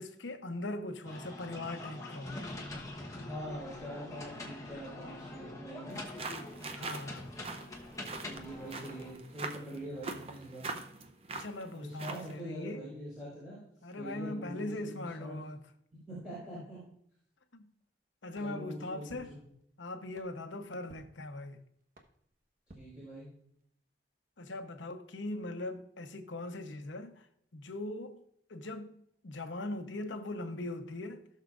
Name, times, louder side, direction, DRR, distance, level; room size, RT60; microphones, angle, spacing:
voice 1, 0.0-2.4 6.7-7.3 11.3-12.8 13.8-15.6 16.6-16.7 17.5-17.7 18.2-19.4 19.8-21.6 24.4-27.3 27.5-28.2 28.5-31.3, left 2 dB, 90° left, 0.9 m, -40 dB
sound 1, 1.0-9.1, left 2 dB, 20° left, 1.0 m, -44 dB
voice 2, 3.2-6.0 8.1-10.7 11.7-13.6 13.9-15.4 16.1-16.8 18.4-19.4 22.7-23.3, equal, ahead, 4.2 m, -44 dB
sound 2, 5.9-12.4, right 3 dB, 30° right, 0.7 m, -43 dB
sound 3, 18.3-23.7, right 1 dB, 50° right, 1.1 m, -61 dB
16.5 x 6.5 x 2.5 m
head